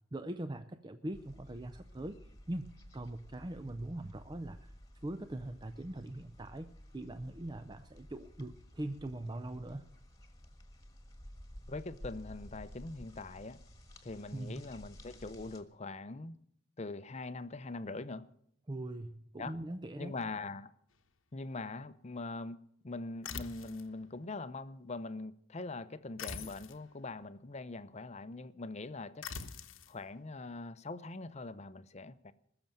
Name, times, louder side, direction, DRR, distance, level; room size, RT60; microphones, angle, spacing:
voice 1, 0.1-4.7 5.0-9.9 14.3-14.6 18.7-20.1, right 1 dB, 20° right, 0.5 m, -42 dB
sound 1, 1.1-15.6, equal, 15° left, 1.5 m, -54 dB
voice 2, 11.7-13.6 14.0-16.4 16.8-18.3 19.4-19.6 20.0-20.7 21.3-22.6 22.8-29.3 29.9-32.3, left 3 dB, 35° left, 0.6 m, -42 dB
sound 2, 23.2-23.9 26.2-26.8 29.2-29.9, left 5 dB, 85° left, 1.1 m, -43 dB
20.5 x 6.9 x 9.0 m
head